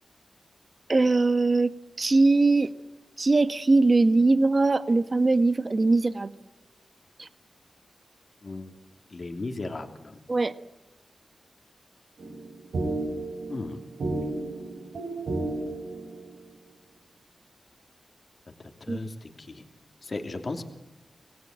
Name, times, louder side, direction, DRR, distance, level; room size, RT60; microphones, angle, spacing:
voice 1, 0.9-1.7 2.0-2.7 3.2-6.3 7.2-7.3 10.3-10.5 18.9-19.0, right 3 dB, 35° right, 12 dB, 1.3 m, -21 dB
voice 2, 8.4-8.7 9.1-10.2 13.5-13.8 18.8-19.6 20.0-20.6, left 2 dB, 40° left, 5 dB, 3.0 m, -35 dB
sound 1, 12.2-16.5, right 2 dB, 85° right, 5.3 m, -33 dB
26.5 x 20.5 x 9.0 m, 0.96 s
wide cardioid pair, 160°, 0 cm